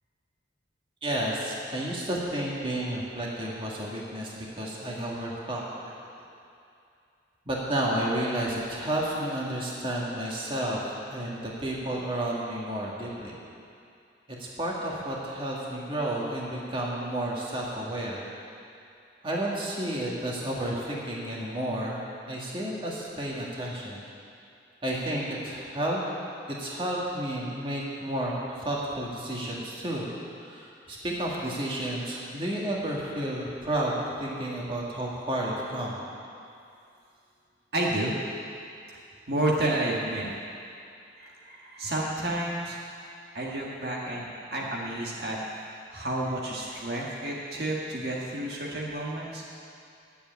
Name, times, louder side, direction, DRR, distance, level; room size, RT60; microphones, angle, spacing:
voice 1, 1.0-5.9 7.5-10.8 11.1-13.3 14.4-18.2 19.2-22.0 22.3-24.0 24.8-26.0 26.5-30.1 30.3-36.0, right 1 dB, 30° right, -4 dB, 1.9 m, -31 dB
voice 2, 37.7-38.2 39.3-40.3 41.1-42.8 43.3-45.4 45.9-49.4, right 1 dB, 60° right, -4 dB, 1.6 m, -30 dB
10.0 x 7.8 x 9.2 m, 2.5 s
head